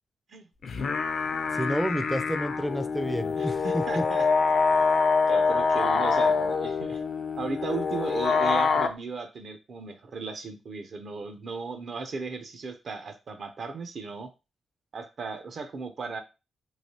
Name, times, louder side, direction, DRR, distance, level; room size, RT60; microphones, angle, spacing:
sound 1, 0.6-8.9, left 5 dB, 60° left, 0.4 m, -25 dB
voice 1, 1.5-4.0, equal, 5° right, 10 dB, 0.4 m, -30 dB
voice 2, 3.4-4.3 5.3-7.0 7.4-14.3 14.9-16.2, right 4 dB, 55° right, 8 dB, 0.5 m, -36 dB
3.1 x 2.9 x 2.8 m, 0.28 s
cardioid pair, 110°, 0 cm